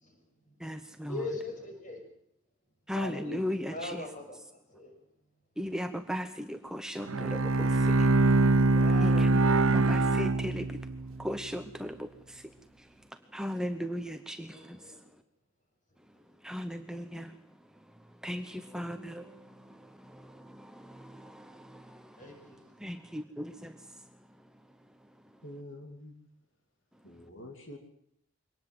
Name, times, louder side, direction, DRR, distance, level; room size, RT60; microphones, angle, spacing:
voice 1, 0.0-0.6 1.1-2.0 3.7-4.9 8.7-9.4 14.5-15.0 22.2-22.6, left 2 dB, 40° left, 6.6 m, -41 dB
voice 2, 0.6-1.3 2.9-4.1 5.6-8.3 8.6-9.4 9.7-15.1 16.4-24.7 25.0-25.3, equal, 5° right, 0.9 m, -39 dB
voice 3, 2.9-3.4 25.4-26.1 27.0-27.8, left 1 dB, 65° left, 2.7 m, -44 dB
Bowed string instrument, 7.0-11.1, right 2 dB, 85° right, 0.9 m, -24 dB
23.5 x 19.0 x 7.9 m
head